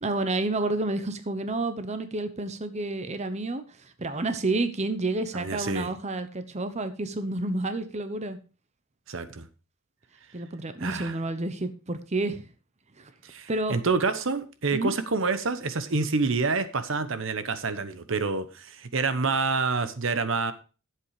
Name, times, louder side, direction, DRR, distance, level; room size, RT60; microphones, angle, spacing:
voice 1, 0.0-8.4 10.3-12.5 13.0-13.1 13.5-13.8 14.7-14.9, right 2 dB, 35° right, 10 dB, 0.9 m, -30 dB
voice 2, 5.3-5.9 9.1-9.5 10.8-11.1 13.2-20.5, right 4 dB, 65° right, 11 dB, 1.0 m, -27 dB
12.0 x 7.7 x 4.9 m, 0.35 s
head